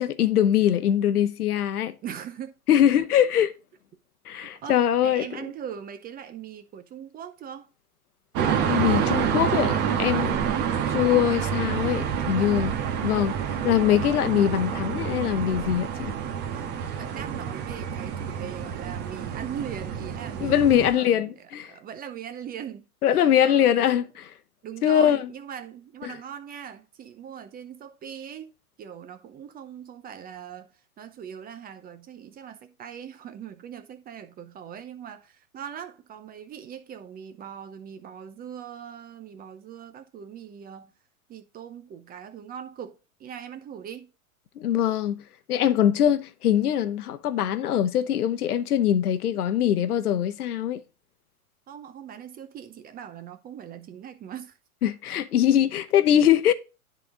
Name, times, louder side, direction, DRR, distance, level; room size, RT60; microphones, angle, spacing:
voice 1, 0.0-2.0 2.7-3.5 4.3-5.3 8.7-10.4 10.9-12.7 13.0-13.4 13.6-16.1 20.4-21.7 23.0-24.3 24.8-25.3 26.0-26.1 44.6-45.2 45.5-50.8 54.8-56.5, left 10 dB, 80° left, 0.9 m, -22 dB
voice 2, 2.0-2.8 3.4-3.5 4.3-7.7 10.4-10.7 16.5-16.7 17.0-21.3 21.7-23.9 24.6-28.5 28.8-40.9 41.3-44.1 51.7-54.6, right 8 dB, 20° right, 0.6 m, -40 dB
sound 1, 8.4-20.9, right 8 dB, 40° right, 1.4 m, -28 dB
10.5 x 4.1 x 3.8 m
hypercardioid pair, 110°, 44 cm